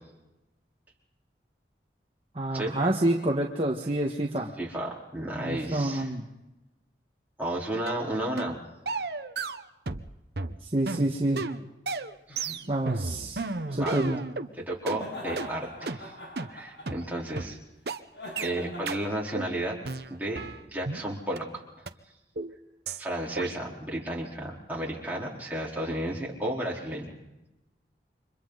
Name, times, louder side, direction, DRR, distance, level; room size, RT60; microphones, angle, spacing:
voice 1, 2.3-4.5 5.4-6.3 10.6-11.4 12.7-13.4 13.7-14.2, right 1 dB, 30° right, -1 dB, 1.5 m, -28 dB
voice 2, 4.6-6.1 7.4-8.6 12.3-12.5 13.7-14.0 14.6-16.1 16.5-17.6 18.4-19.8 20.1-20.4 20.7-21.5 23.0-27.1, right 1 dB, 10° right, -4 dB, 4.1 m, -33 dB
sound 1, 7.9-8.0 8.4-8.6 8.9-10.1 10.3-14.5 14.9-15.0 15.4-15.5 15.9-16.0 16.4-16.5 16.9-17.0 17.4-17.5 17.9-18.0 18.4-18.5 18.9-19.0 19.4-19.5 19.8-21.0 21.4-21.5 21.9-22.0 22.4-22.5 22.9-23.0 23.4-23.5, right 3 dB, 65° right, 1.0 m, -33 dB
sound 2, 12.3-14.1 14.9-17.2 18.1-18.8, left 1 dB, 80° left, 6.9 m, -43 dB
30.0 x 25.5 x 4.0 m, 0.96 s
head